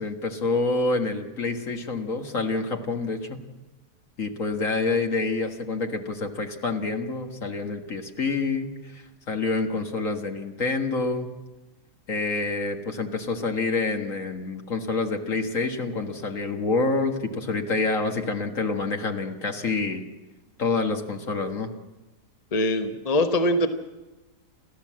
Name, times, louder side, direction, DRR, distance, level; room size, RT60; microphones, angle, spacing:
voice 1, 0.0-3.4 4.2-11.3 12.1-20.0 20.6-21.7, left 3 dB, 55° left, 4 dB, 2.0 m, -27 dB
voice 2, 22.5-23.7, left 1 dB, 25° left, 6 dB, 1.1 m, -22 dB
30.0 x 13.0 x 7.6 m, 1.1 s
omnidirectional pair, 1.7 m